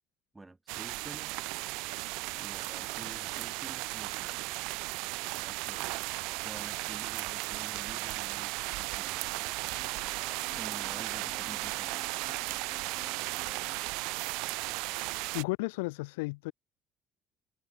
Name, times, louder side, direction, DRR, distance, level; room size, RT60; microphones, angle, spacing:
voice 1, 0.3-1.4 2.3-4.6 5.3-6.0 6.4-9.5 10.5-12.1, right 2 dB, 15° right, 3.5 m, -50 dB
sound 1, 0.7-15.4, right 27 dB, 80° right, 0.9 m, -35 dB
sound 2, 9.0-13.8, left 7 dB, 50° left, 2.4 m, -54 dB
voice 2, 15.3-16.5, left 25 dB, 90° left, 0.7 m, -33 dB
hypercardioid pair, 65°, 0 cm